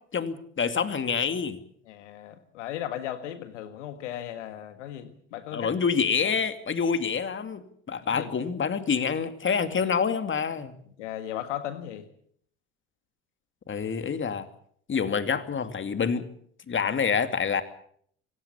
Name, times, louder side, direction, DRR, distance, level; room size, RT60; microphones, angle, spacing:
voice 1, 0.1-1.6 5.5-10.7 13.7-14.5 14.9-16.3 16.7-17.6, left 6 dB, 35° left, 10 dB, 2.6 m, -27 dB
voice 2, 1.9-5.7 6.2-6.4 8.1-8.4 11.0-12.1, left 11 dB, 80° left, 10 dB, 1.8 m, -36 dB
25.0 x 17.5 x 7.2 m, 0.63 s
hypercardioid pair, 65°, 35 cm